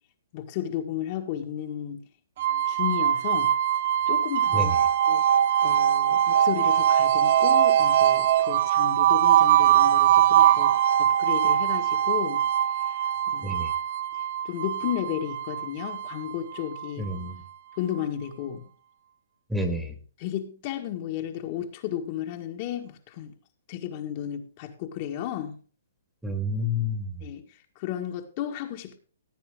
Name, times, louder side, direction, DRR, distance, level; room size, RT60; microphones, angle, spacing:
voice 1, 0.3-2.0 2.7-3.5 4.1-4.7 5.0-5.2 5.6-12.4 12.8-13.0 13.3-13.5 14.4-17.1 17.8-18.7 20.2-23.3 23.7-25.6 27.2-29.0, left 10 dB, 40° left, 1.6 m, -33 dB
sound 1, 2.4-17.3, right 10 dB, 50° right, 0.6 m, -22 dB
voice 2, 13.4-13.7 17.0-17.4 19.5-19.9 26.2-27.2, left 1 dB, 5° right, 1.8 m, -29 dB
16.5 x 8.7 x 3.7 m
hypercardioid pair, 145°, 0 cm